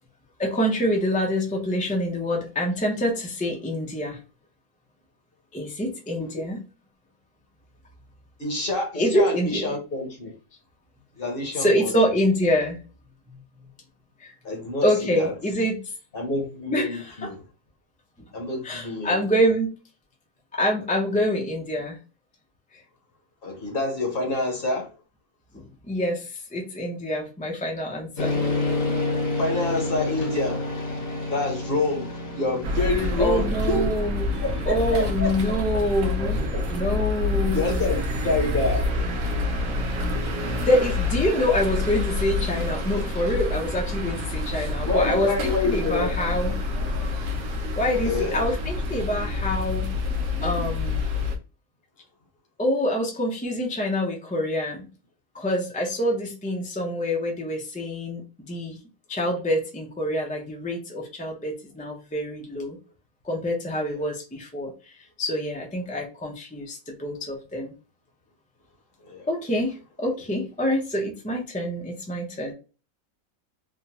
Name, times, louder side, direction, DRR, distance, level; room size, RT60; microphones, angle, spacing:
voice 1, 0.4-4.2 5.5-6.6 9.0-9.8 11.6-12.8 14.2-14.3 14.8-15.8 16.7-17.0 18.6-19.7 20.5-22.0 22.7-22.8 25.5-28.4 33.2-34.4 34.7-36.4 36.7-37.9 40.6-46.6 47.7-49.9 50.4-51.0 52.6-54.9 55.3-58.8 59.1-62.8 63.2-67.7 69.3-72.5, equal, 10° left, 0.3 m, -26 dB
voice 2, 8.4-10.3 11.1-12.2 14.4-15.3 16.1-17.5 18.3-19.2 23.4-25.0 29.4-30.7 31.3-33.9 34.4-35.3 36.5-36.6 37.5-38.9 44.8-46.1 48.0-48.4 63.9-64.1 69.0-69.3, left 2 dB, 45° left, 1.0 m, -27 dB
sound 1, 28.2-43.7, left 2 dB, 65° left, 1.4 m, -32 dB
sound 2, 32.6-51.4, left 2 dB, 60° right, 1.0 m, -27 dB
3.6 x 2.2 x 2.8 m
omnidirectional pair, 1.5 m